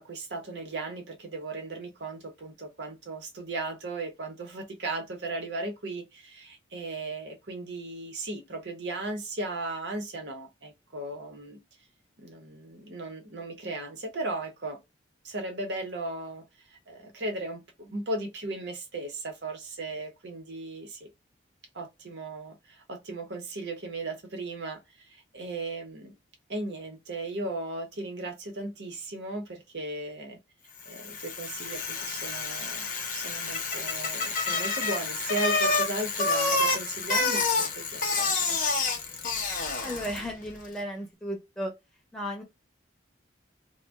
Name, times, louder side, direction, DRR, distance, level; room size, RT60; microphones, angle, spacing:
voice 1, 0.0-11.6 12.2-14.8 15.2-21.1 21.7-26.2 26.5-30.4 30.8-38.6, right 2 dB, 65° right, 0.8 m, -36 dB
Bicycle, 30.9-40.3, left 3 dB, 45° left, 0.6 m, -28 dB
voice 2, 39.8-41.7 42.1-42.4, equal, ahead, 0.7 m, -34 dB
2.5 x 2.1 x 3.3 m
head